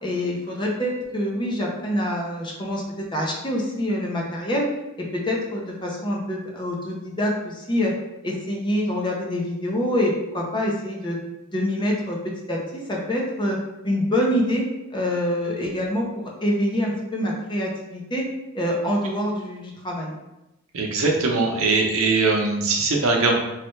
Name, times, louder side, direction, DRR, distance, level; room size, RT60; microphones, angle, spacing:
voice 1, 0.0-4.7 5.0-7.9 8.2-11.2 11.5-13.6 13.8-18.3 18.5-20.1, equal, 20° left, -2 dB, 0.6 m, -26 dB
voice 2, 20.7-23.4, right 3 dB, 75° right, 1 dB, 0.7 m, -21 dB
3.2 x 3.2 x 3.1 m, 0.95 s
head